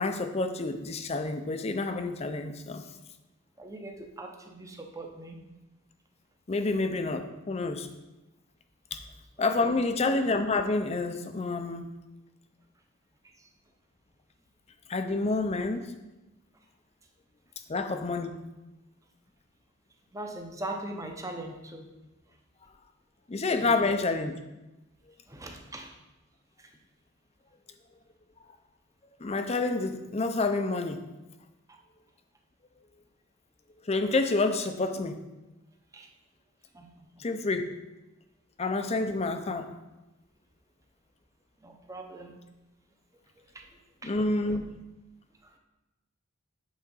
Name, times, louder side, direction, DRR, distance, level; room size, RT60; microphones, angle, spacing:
voice 1, 0.0-2.8 6.5-7.9 9.4-11.9 14.9-15.9 17.7-18.4 23.3-24.3 29.2-31.0 33.9-35.2 37.2-37.7 38.6-39.7 44.0-44.8, left 3 dB, 30° left, 8 dB, 0.5 m, -28 dB
voice 2, 3.6-5.4 9.4-9.8 20.1-21.9 23.5-24.0 25.3-25.9 26.6-26.7 31.7-31.8 35.9-36.1 36.7-36.9 41.6-42.4 43.5-43.7 44.0-44.1 44.5-44.6 45.4-45.5, right 1 dB, 15° right, 2 dB, 0.8 m, -41 dB
8.4 x 3.8 x 5.4 m, 1.0 s
head